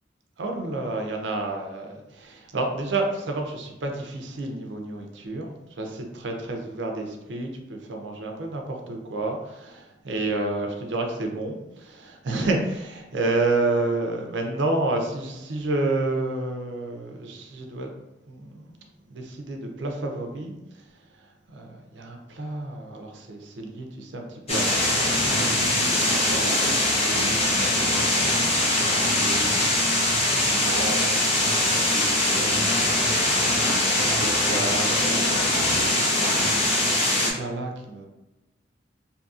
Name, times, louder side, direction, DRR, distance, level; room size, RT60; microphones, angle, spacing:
voice 1, 0.4-17.9 18.3-18.7 19.1-20.5 21.5-26.5 26.8-33.5 34.0-38.1, right 2 dB, 70° right, 2 dB, 0.5 m, -31 dB
sound 1, 24.5-37.3, left 1 dB, 35° left, 0.7 m, -22 dB
2.7 x 2.7 x 2.4 m, 1.0 s
head